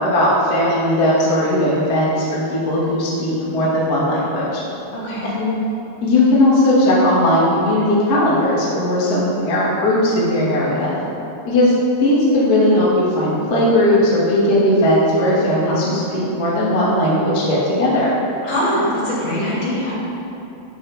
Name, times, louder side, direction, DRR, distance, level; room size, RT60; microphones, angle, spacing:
voice 1, 0.0-4.6 5.2-5.5 6.0-10.9 11.5-11.7 12.0-18.1, left 1 dB, 35° left, -8 dB, 1.7 m, -17 dB
voice 2, 4.9-5.3 15.5-15.9 18.4-19.9, left 1 dB, 50° left, -9 dB, 3.8 m, -23 dB
13.0 x 8.7 x 3.6 m, 2.9 s
omnidirectional pair, 4.9 m